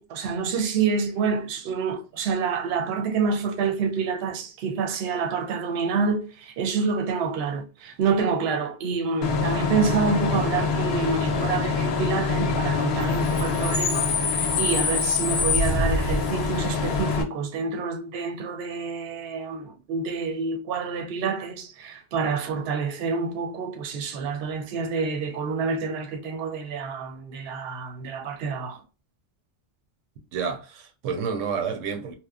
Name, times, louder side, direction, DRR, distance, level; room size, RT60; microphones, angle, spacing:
voice 1, 0.0-28.8, right 5 dB, 65° right, 0.8 m, -28 dB
Bus / Idling / Screech, 9.2-17.2, left 4 dB, 65° left, 0.8 m, -24 dB
voice 2, 30.3-32.1, right 6 dB, 85° right, 0.9 m, -29 dB
2.9 x 2.1 x 2.3 m
omnidirectional pair, 1.3 m